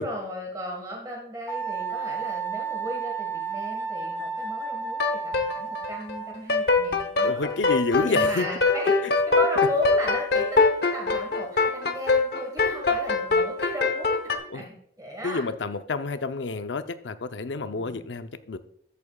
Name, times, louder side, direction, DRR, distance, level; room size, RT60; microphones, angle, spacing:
voice 1, 0.0-7.5 8.0-9.0 9.3-14.7 15.0-15.4 17.8-18.1, equal, 20° right, 1.6 m, -35 dB
Wind instrument woodwind instrument, 1.5-6.5, right 5 dB, 15° left, 1.8 m, -32 dB
sound 1, 5.0-6.2 6.5-14.4, left 3 dB, 60° left, 0.9 m, -23 dB
voice 2, 7.2-8.5 14.5-14.6 15.2-18.6, left 3 dB, 85° left, 0.6 m, -29 dB
13.5 x 8.7 x 2.3 m
head